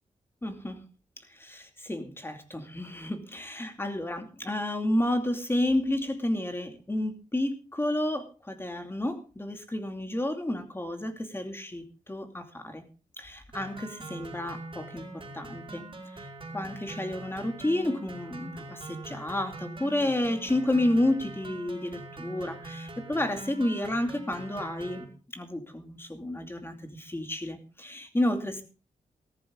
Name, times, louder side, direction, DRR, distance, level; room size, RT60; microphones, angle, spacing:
voice 1, 0.4-0.8 1.3-12.8 13.2-15.9 16.1-16.3 16.5-25.0 25.3-28.6, left 1 dB, 15° left, 6 dB, 2.6 m, -31 dB
sound 1, 13.5-25.0, right 2 dB, 40° right, 4.1 m, -43 dB
15.0 x 14.0 x 3.8 m, 0.36 s
cardioid pair, 80°, 14 cm